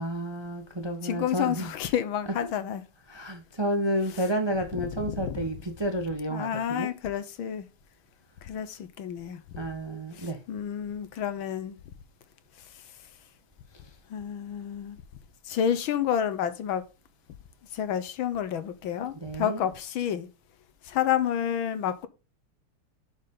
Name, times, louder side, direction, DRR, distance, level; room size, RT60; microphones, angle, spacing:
voice 1, 0.0-1.7 2.4-2.5 3.1-6.9 9.5-10.4 19.2-19.6, right 1 dB, 15° right, 0.9 m, -31 dB
voice 2, 1.0-2.8 4.7-5.5 6.3-7.7 8.4-9.4 10.1-11.8 12.6-12.9 14.1-15.0 15.4-16.8 17.7-20.3 20.8-22.1, left 9 dB, 70° left, 1.7 m, -30 dB
11.0 x 5.3 x 3.8 m
omnidirectional pair, 2.4 m